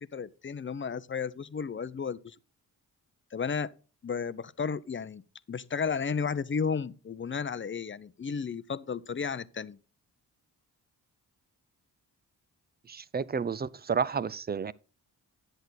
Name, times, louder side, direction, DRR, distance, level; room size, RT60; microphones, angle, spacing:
voice 1, 0.1-2.3 3.3-3.7 4.0-5.2 5.5-9.8, left 6 dB, 30° left, 0.7 m, -33 dB
voice 2, 12.9-14.7, right 6 dB, 25° right, 0.5 m, -31 dB
10.5 x 7.9 x 4.0 m
cardioid pair, 55°, 40 cm